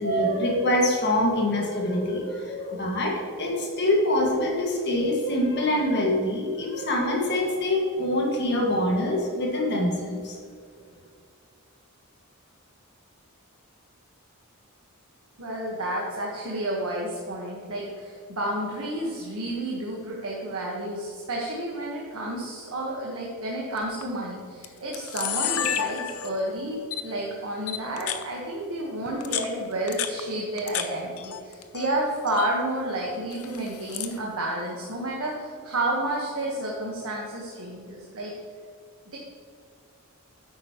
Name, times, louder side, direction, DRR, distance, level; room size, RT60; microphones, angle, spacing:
voice 1, 0.0-10.4, left 1 dB, 50° left, -1 dB, 1.8 m, -25 dB
voice 2, 15.4-38.3 39.1-39.2, right 1 dB, 70° right, -3 dB, 1.3 m, -31 dB
Camera, 23.8-24.0 24.6-24.7 24.9-26.5 26.9-27.0 27.7-28.2 29.1-30.9 31.2-31.9 32.2-32.5 33.3-34.2, left 10 dB, 80° left, 0.7 m, -31 dB
9.7 x 8.2 x 3.0 m, 2.3 s
head